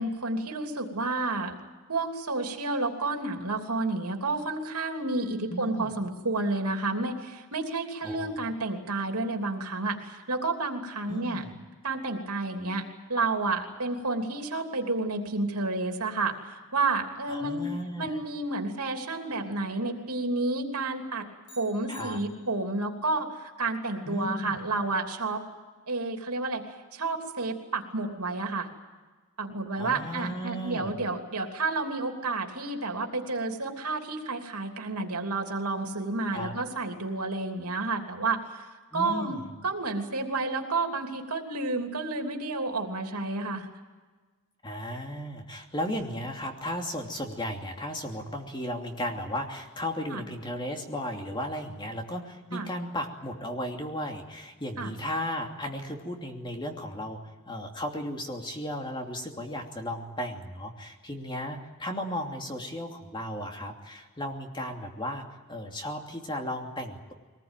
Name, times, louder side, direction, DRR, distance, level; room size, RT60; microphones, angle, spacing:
voice 1, 0.0-1.6 1.9-11.4 11.8-17.7 18.0-21.3 21.6-25.4 25.9-26.6 26.9-28.7 29.4-38.7 38.9-39.4 39.6-43.7 50.1-50.2 52.5-52.7 54.8-54.9, right 3 dB, 90° right, 3 dB, 3.1 m, -30 dB
voice 2, 5.5-5.9 8.0-8.5 11.1-11.5 17.3-18.1 21.9-22.2 24.1-24.6 29.8-30.9 36.3-36.5 38.9-39.4 44.6-57.2 57.5-67.1, equal, 20° left, 2 dB, 2.8 m, -35 dB
sound 1, 21.4-22.9, left 1 dB, 80° left, 4.9 m, -53 dB
22.5 x 20.0 x 9.1 m, 1.3 s
head